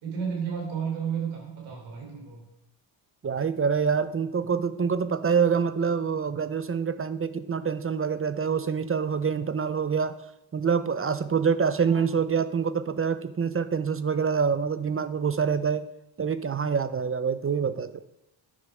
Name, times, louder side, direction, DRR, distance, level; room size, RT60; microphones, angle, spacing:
voice 1, 0.0-2.4 11.8-12.0, right 7 dB, 85° right, -1 dB, 3.7 m, -32 dB
voice 2, 3.2-10.2 10.5-15.9 16.2-17.9, right 6 dB, 30° right, 13 dB, 0.6 m, -26 dB
9.9 x 5.5 x 4.9 m, 0.90 s
cardioid pair, 85°, 48 cm